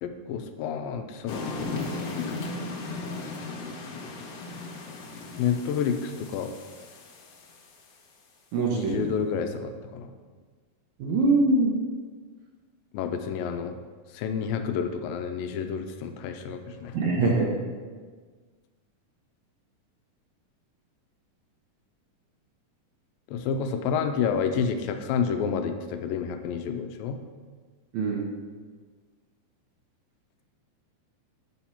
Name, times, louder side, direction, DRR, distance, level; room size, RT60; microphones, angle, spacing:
voice 1, 0.0-1.8 5.4-6.5 8.7-10.1 12.9-13.8 14.1-17.1 23.3-27.2, left 7 dB, 90° left, 7 dB, 2.3 m, -29 dB
sound 1, 1.3-8.0, left 3 dB, 65° left, 1.6 m, -37 dB
voice 2, 8.5-9.1 11.0-11.7 16.9-17.5 27.9-28.3, right 3 dB, 70° right, -1 dB, 1.9 m, -23 dB
8.0 x 4.3 x 5.6 m, 1.5 s
omnidirectional pair, 4.0 m